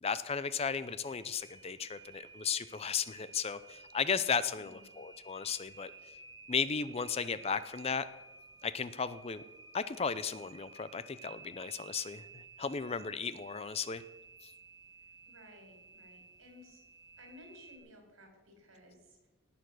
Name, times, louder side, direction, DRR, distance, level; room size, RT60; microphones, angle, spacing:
voice 1, 0.0-5.9 6.5-8.1 8.6-9.4 9.7-14.0 14.4-14.5, left 6 dB, 30° left, 15 dB, 0.4 m, -35 dB
sound 1, 0.7-17.8, right 4 dB, 20° right, 1.5 m, -54 dB
voice 2, 4.5-4.8 15.2-16.8 17.2-19.3, left 1 dB, 70° right, 3 dB, 4.3 m, -57 dB
18.5 x 7.0 x 6.3 m, 1.2 s
head